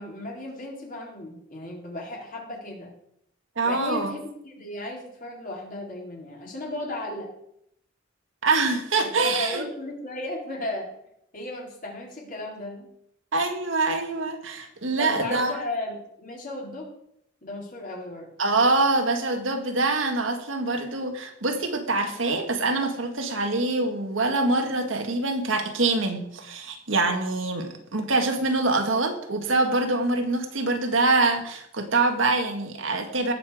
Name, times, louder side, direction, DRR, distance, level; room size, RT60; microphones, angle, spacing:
voice 1, 0.0-2.9 3.6-7.3 8.9-10.9 11.3-12.9 15.0-16.9 17.4-18.3, left 1 dB, 45° left, -2 dB, 4.1 m, -35 dB
voice 2, 3.6-4.2 8.4-9.7 13.3-15.6 18.4-33.3, right 3 dB, 80° right, 5 dB, 1.9 m, -25 dB
18.0 x 7.1 x 5.0 m, 0.74 s
head